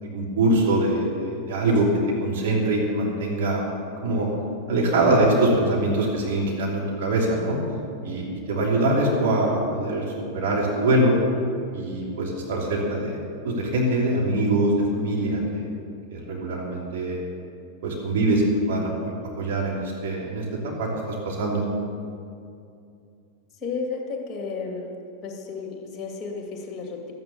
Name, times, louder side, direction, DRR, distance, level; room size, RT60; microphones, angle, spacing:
voice 1, 0.0-1.9 2.2-3.6 4.0-4.3 4.7-7.6 8.0-10.0 10.3-11.2 11.7-15.6 16.1-17.2 17.8-21.7, right 1 dB, 55° right, -3 dB, 3.0 m, -23 dB
voice 2, 23.6-24.9 25.2-27.1, left 4 dB, 20° left, 1 dB, 2.4 m, -32 dB
12.5 x 9.5 x 7.1 m, 2.4 s
figure-of-eight pair, 90°, 0 cm